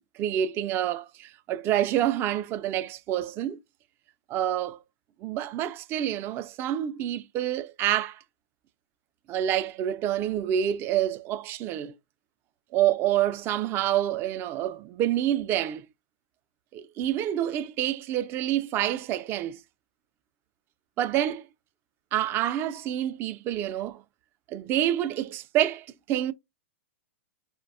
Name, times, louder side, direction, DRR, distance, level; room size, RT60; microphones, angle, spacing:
voice 1, 0.2-3.6 4.3-4.8 5.2-8.2 9.3-11.9 12.7-15.9 16.7-19.6 21.0-21.4 22.1-24.0 24.5-26.3, right 11 dB, 30° right, 0.4 m, -27 dB
4.5 x 2.1 x 2.4 m
hypercardioid pair, 115°, 7 cm